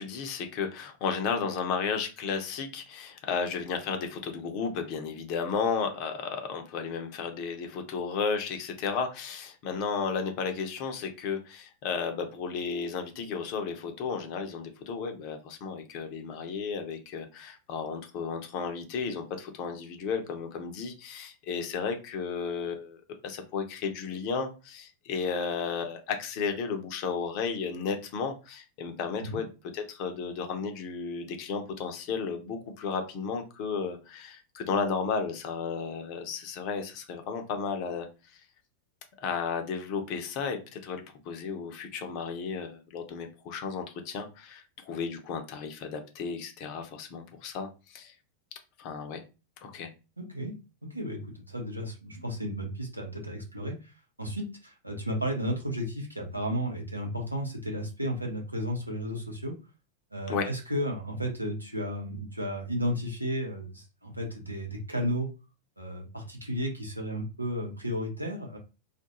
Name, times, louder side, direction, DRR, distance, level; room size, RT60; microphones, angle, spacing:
voice 1, 0.0-38.1 38.3-38.4 39.2-48.1 48.8-49.2 49.6-49.9 60.3-60.5, left 5 dB, 45° left, 5 dB, 0.6 m, -33 dB
voice 2, 50.2-50.5 50.9-53.9 54.2-59.5 60.1-65.3 65.8-68.6, equal, 85° right, 1 dB, 0.7 m, -33 dB
2.4 x 2.1 x 2.9 m, 0.30 s
figure-of-eight pair, 90°, 0 cm